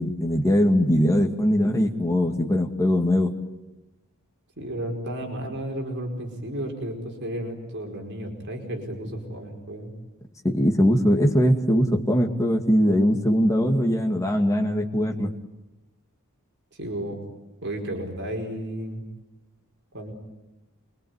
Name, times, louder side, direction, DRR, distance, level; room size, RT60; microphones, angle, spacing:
voice 1, 0.0-3.3 10.4-15.3, equal, 15° left, 2 dB, 2.1 m, -21 dB
voice 2, 4.6-9.9 16.7-17.2 17.6-19.0 19.9-20.1, right 1 dB, 55° right, 2 dB, 5.0 m, -33 dB
26.5 x 23.0 x 9.6 m, 1.0 s
head